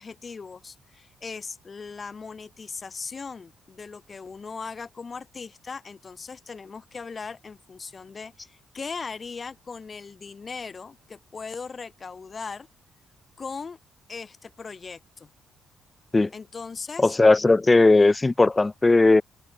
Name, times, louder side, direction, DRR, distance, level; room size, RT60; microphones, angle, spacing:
voice 1, 0.0-12.7 13.4-13.8 14.1-15.3 16.3-17.2, left 5 dB, 35° left, 5.2 m, -38 dB
voice 2, 17.0-19.2, left 3 dB, 20° left, 0.5 m, -17 dB
cardioid pair, 90°, 0 cm